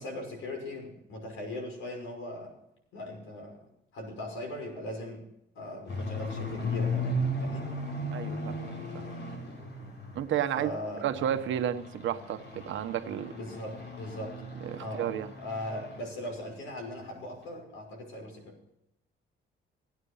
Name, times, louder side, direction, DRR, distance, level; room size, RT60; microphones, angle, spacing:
voice 1, 0.0-2.5 2.9-5.3 5.5-7.7 10.5-11.0 13.3-14.3 14.8-18.6, left 1 dB, 80° left, 2 dB, 5.9 m, -39 dB
sound 1, 5.9-10.4 10.8-16.0 16.3-16.6 17.0-17.1 17.4-17.5, left 1 dB, 60° left, 6.0 m, -36 dB
voice 2, 8.1-8.5 8.9-9.0 10.1-10.7 11.0-13.4 14.6-15.3, right 10 dB, 75° right, 8 dB, 1.3 m, -31 dB
17.0 x 9.6 x 5.6 m, 0.81 s
cardioid pair, 90°, 20 cm